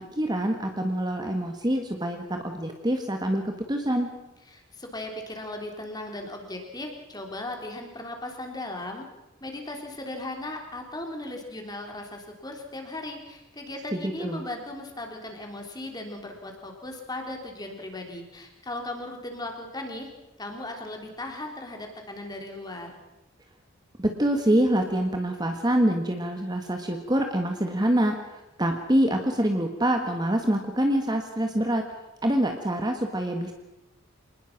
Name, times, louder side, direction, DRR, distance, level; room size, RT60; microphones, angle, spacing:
voice 1, 0.0-4.1 13.9-14.4 24.0-31.8 32.2-33.5, right 1 dB, 20° right, 4 dB, 1.6 m, -25 dB
voice 2, 4.5-9.1 9.4-20.1 20.4-23.0, left 1 dB, 20° left, 3 dB, 3.5 m, -37 dB
27.0 x 20.0 x 6.0 m, 0.98 s
head